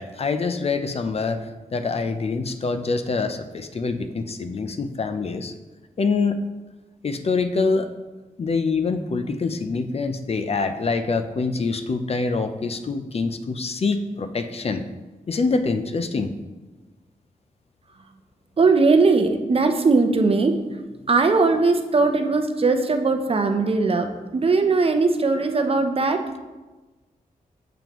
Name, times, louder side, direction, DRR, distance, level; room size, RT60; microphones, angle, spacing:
voice 1, 0.0-5.5 6.0-6.4 7.0-7.9 8.4-14.8 15.3-16.3, left 4 dB, 45° left, 8 dB, 0.5 m, -25 dB
voice 2, 18.6-20.6 21.1-26.2, right 3 dB, 40° right, 6 dB, 0.7 m, -19 dB
7.5 x 7.0 x 3.0 m, 1.2 s
wide cardioid pair, 95°, 15 cm